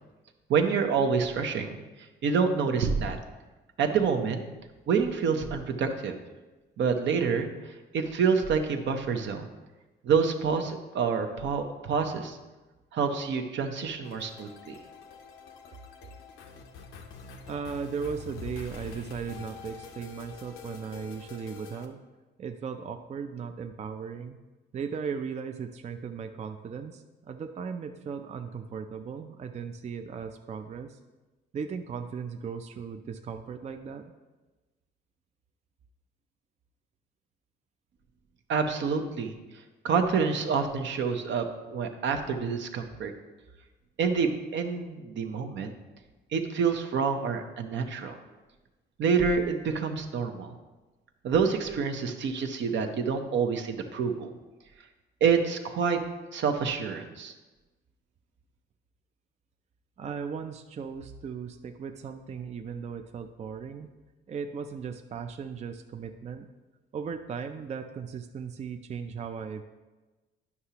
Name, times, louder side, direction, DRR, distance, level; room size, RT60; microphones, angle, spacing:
voice 1, 0.5-1.8 2.2-3.2 3.8-4.4 4.9-6.2 6.8-7.5 7.9-9.5 10.0-12.4 12.9-14.7 38.5-39.3 39.8-43.1 44.0-45.7 46.3-48.2 49.0-50.5 51.2-54.3 55.2-56.0 56.3-57.3, right 5 dB, 70° right, 5 dB, 0.8 m, -27 dB
sound 1, 14.0-21.9, left 5 dB, 90° left, 0.7 m, -45 dB
voice 2, 17.5-22.0 22.4-24.4 24.7-31.0 31.5-34.1 60.0-63.9 64.3-66.5 66.9-69.6, right 6 dB, 35° right, 6 dB, 0.4 m, -37 dB
9.6 x 5.7 x 2.9 m, 1.2 s
cardioid pair, 90°, 20 cm